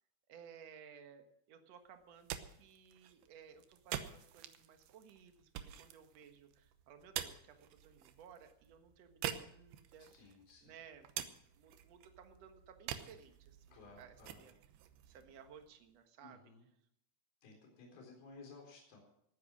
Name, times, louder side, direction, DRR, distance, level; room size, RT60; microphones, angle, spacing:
voice 1, 0.3-10.1 10.6-11.1 11.5-13.7 14.0-14.5 15.1-16.4, right 7 dB, 55° right, 6 dB, 1.9 m, -58 dB
sound 1, 2.0-16.0, right 11 dB, 80° right, 2.9 m, -48 dB
voice 2, 10.1-10.8 13.7-14.5 16.2-16.7 17.4-19.0, left 4 dB, 65° left, 0 dB, 5.8 m, -57 dB
18.5 x 9.6 x 6.1 m, 0.72 s
omnidirectional pair, 4.6 m